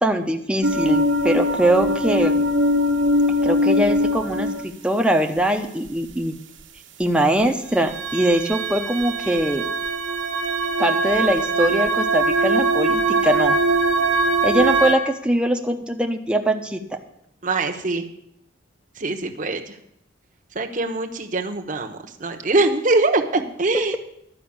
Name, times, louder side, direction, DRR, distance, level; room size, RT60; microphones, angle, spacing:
voice 1, 0.0-2.4 3.4-6.3 7.0-9.7 10.8-13.6 14.4-16.8 23.7-24.0, right 1 dB, 5° right, 4 dB, 0.8 m, -22 dB
sound 1, 0.6-4.6 7.9-15.0, right 1 dB, 75° right, 1.3 m, -21 dB
voice 2, 17.4-18.0 19.0-19.7 20.5-23.9, right 2 dB, 45° right, 5 dB, 1.1 m, -23 dB
12.0 x 5.7 x 8.7 m, 0.74 s
head